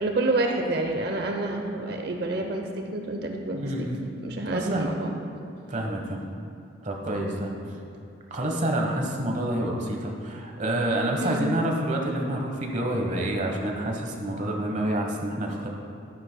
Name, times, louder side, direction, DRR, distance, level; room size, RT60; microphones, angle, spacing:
voice 1, 0.0-3.9 4.2-5.1 11.2-11.4, right 2 dB, 55° right, 3 dB, 0.7 m, -28 dB
voice 2, 3.5-4.0 4.2-4.9 5.7-6.2 6.8-7.5 8.3-15.7, right 1 dB, 40° right, 1 dB, 1.1 m, -28 dB
13.0 x 10.0 x 2.2 m, 2.7 s
head